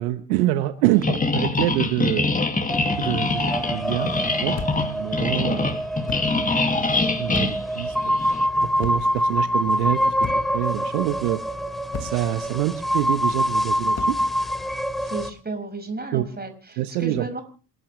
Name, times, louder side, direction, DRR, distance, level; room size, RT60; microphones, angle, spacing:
voice 1, 0.0-2.3 3.0-5.7 6.4-6.6 7.2-8.2 8.8-11.4 12.0-14.2 16.1-16.2 16.8-17.3, right 15 dB, 75° right, 11 dB, 1.2 m, -26 dB
sound 1, 1.0-8.5, left 3 dB, 15° left, 2.4 m, -24 dB
sound 2, 2.7-15.3, equal, ahead, 2.7 m, -25 dB
sound 3, 4.5-5.0 6.1-6.4 7.3-7.7 8.8-9.2 10.2-10.6 11.9-12.3 13.9-14.3, left 5 dB, 35° left, 1.8 m, -34 dB
voice 2, 15.0-17.4, right 3 dB, 20° right, 7 dB, 5.8 m, -33 dB
27.5 x 12.5 x 3.3 m, 0.37 s
hypercardioid pair, 55°, 45 cm